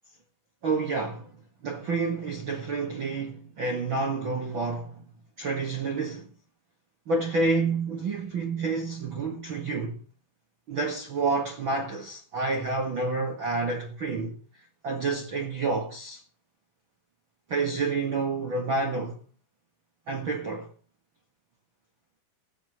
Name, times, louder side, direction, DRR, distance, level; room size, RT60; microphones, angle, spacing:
voice 1, 0.6-1.3 1.6-5.0 5.4-6.3 7.1-10.0 10.7-14.4 14.8-16.2 17.5-19.2 20.1-20.7, right 3 dB, 40° right, 2.1 m, -29 dB
15.0 x 8.8 x 7.4 m
omnidirectional pair, 4.2 m